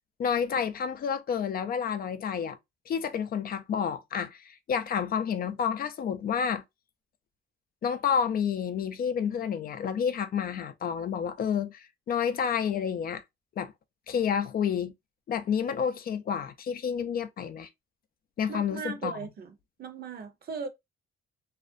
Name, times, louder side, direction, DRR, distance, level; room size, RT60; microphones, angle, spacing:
voice 1, 0.2-2.6 2.9-6.6 7.8-13.2 13.6-13.7 14.1-14.9 15.3-17.7 18.4-19.1, left 7 dB, 50° left, 0.4 m, -29 dB
voice 2, 18.5-20.7, right 5 dB, 50° right, 0.7 m, -38 dB
2.5 x 2.0 x 2.5 m
cardioid pair, 90°, 20 cm